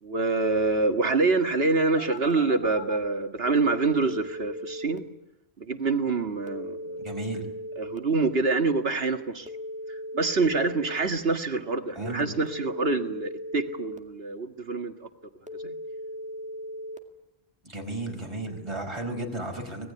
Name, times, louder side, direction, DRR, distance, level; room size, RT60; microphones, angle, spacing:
voice 1, 0.0-5.1 5.6-7.0 7.8-9.5 9.9-15.1 15.6-15.7, right 3 dB, 65° right, 7 dB, 2.1 m, -26 dB
Telephone, 2.0-3.0 3.5-5.0 6.5-8.0 9.5-11.0 12.5-14.0 15.5-17.0, equal, 5° right, 2.0 m, -38 dB
voice 2, 7.0-7.4 11.9-12.3 17.6-19.9, right 1 dB, 25° right, 3 dB, 5.0 m, -34 dB
25.5 x 19.5 x 9.7 m, 0.91 s
omnidirectional pair, 1.1 m